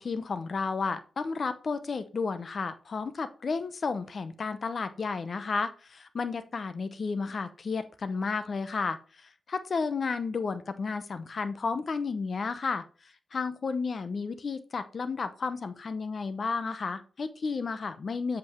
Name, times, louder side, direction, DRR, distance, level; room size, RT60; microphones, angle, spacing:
voice 1, 0.0-9.0 9.5-12.9 13.3-18.4, left 4 dB, 40° left, 11 dB, 0.7 m, -32 dB
7.8 x 5.4 x 4.4 m, 0.38 s
wide cardioid pair, 150°, 0 cm